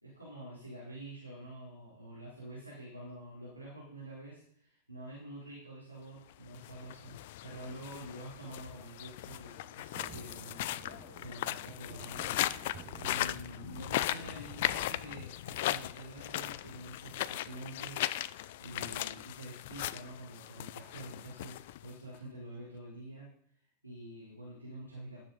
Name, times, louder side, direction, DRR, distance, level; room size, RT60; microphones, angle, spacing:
voice 1, 0.0-7.2 7.4-23.3 23.8-25.2, right 1 dB, 90° right, -9 dB, 4.1 m, -47 dB
sound 1, 6.4-22.2, left 14 dB, 50° left, 0.4 m, -38 dB
sound 2, 9.9-15.2, right 6 dB, 35° right, 1.8 m, -53 dB
13.0 x 7.3 x 5.2 m, 0.68 s
figure-of-eight pair, 90°, 0 cm